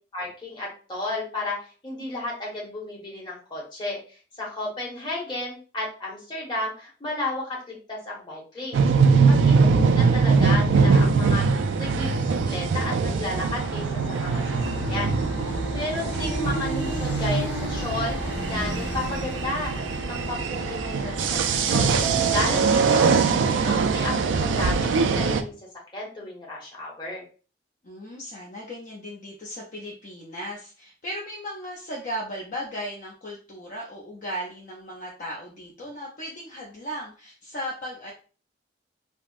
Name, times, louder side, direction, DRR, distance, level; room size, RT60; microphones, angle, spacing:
voice 1, 0.1-8.8 9.2-14.4 14.9-15.1 15.7-23.1 23.4-25.5 25.9-27.2, left 2 dB, 25° left, -4 dB, 1.0 m, -33 dB
sound 1, 8.7-25.4, right 5 dB, 90° right, 0.3 m, -22 dB
sound 2, 13.3-22.8, right 1 dB, 70° left, 0.9 m, -33 dB
voice 2, 14.3-15.7 27.8-38.1, equal, 45° left, -2 dB, 0.5 m, -37 dB
3.4 x 2.0 x 2.4 m, 0.38 s
head